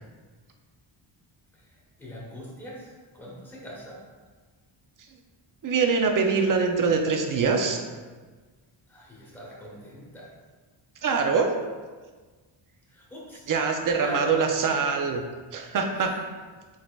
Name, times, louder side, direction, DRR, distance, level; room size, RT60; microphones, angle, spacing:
voice 1, 1.5-4.0 8.9-10.3 12.9-13.4 13.9-14.5 16.0-16.2, equal, 5° left, -5 dB, 0.9 m, -41 dB
voice 2, 5.6-7.8 11.0-11.5 13.5-15.2 15.5-16.1, right 5 dB, 45° right, 4 dB, 0.5 m, -23 dB
4.8 x 3.9 x 2.3 m, 1.4 s
wide cardioid pair, 140°, 48 cm